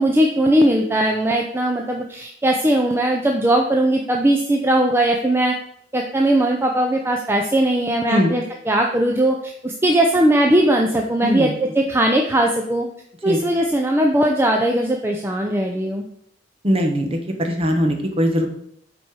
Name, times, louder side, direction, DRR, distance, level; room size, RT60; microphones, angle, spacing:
voice 1, 0.0-5.6 5.9-12.9 13.2-16.0, right 1 dB, 10° right, 1 dB, 0.5 m, -19 dB
voice 2, 11.2-11.5 13.2-13.4 16.6-18.5, equal, 30° right, 3 dB, 1.0 m, -20 dB
7.3 x 4.4 x 4.7 m, 0.69 s
head